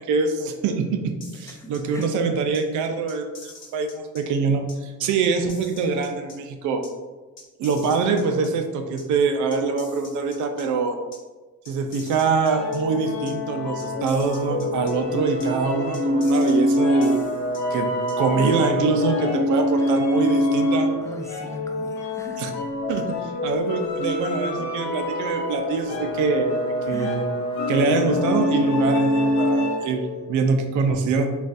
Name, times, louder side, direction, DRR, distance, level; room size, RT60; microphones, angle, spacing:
voice 1, 0.0-6.8 7.6-11.0 11.7-17.2 17.7-17.9 18.2-20.9 22.4-22.5 22.9-27.2 27.7-31.3, right 4 dB, 80° right, 6 dB, 0.5 m, -24 dB
sound 1, 1.2-2.1 2.5-2.6 3.1-4.2 4.7-4.8 5.2-6.3 6.8-6.9 7.4-8.5 9.0-9.1 9.5-10.6 11.1-11.2 11.6-12.8 13.3-13.4 13.8-14.9 15.4-15.5 15.9-17.6 18.1-18.2, left 3 dB, 40° left, 0.9 m, -44 dB
voice 2, 1.6-2.1 19.8-19.9 21.0-22.4 26.9-27.3, equal, 10° left, 1 dB, 0.4 m, -38 dB
sound 2, 12.3-30.1, left 1 dB, 70° left, 0.6 m, -25 dB
3.9 x 2.4 x 2.5 m, 1.3 s
cardioid pair, 90°, 30 cm